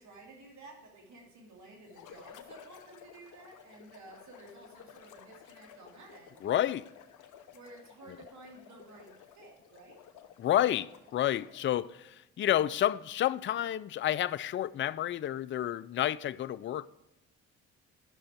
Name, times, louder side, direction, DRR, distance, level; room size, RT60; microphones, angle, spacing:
voice 1, 0.0-6.5 7.5-10.0, right 2 dB, 60° right, 2.7 m, -53 dB
sound 1, 1.9-11.7, left 8 dB, 65° left, 0.9 m, -55 dB
voice 2, 6.4-6.9 10.4-16.9, left 12 dB, 35° left, 0.4 m, -30 dB
12.0 x 6.3 x 4.3 m
hypercardioid pair, 55°, 32 cm